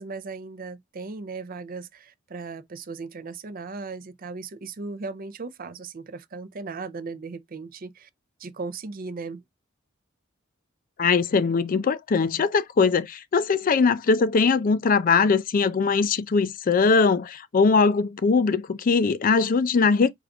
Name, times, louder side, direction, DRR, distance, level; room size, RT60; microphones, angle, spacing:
voice 1, 0.0-8.1 8.4-9.4, right 4 dB, 45° right, 0.5 m, -37 dB
voice 2, 11.0-20.1, left 4 dB, 45° left, 0.4 m, -21 dB
4.9 x 2.5 x 3.4 m
head